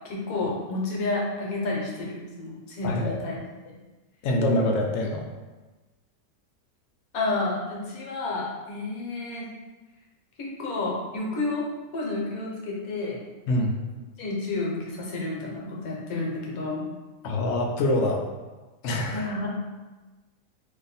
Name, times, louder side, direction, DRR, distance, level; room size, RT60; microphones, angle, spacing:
voice 1, 0.0-3.4 3.7-3.8 7.1-9.5 10.4-11.6 11.9-13.2 14.2-16.8 19.1-19.5, left 2 dB, 65° left, -3 dB, 1.2 m, -30 dB
voice 2, 2.8-3.2 4.2-5.3 13.5-13.8 17.2-18.2 18.8-19.3, left 1 dB, 90° left, 1 dB, 0.6 m, -25 dB
2.7 x 2.5 x 3.9 m, 1.2 s
omnidirectional pair, 1.8 m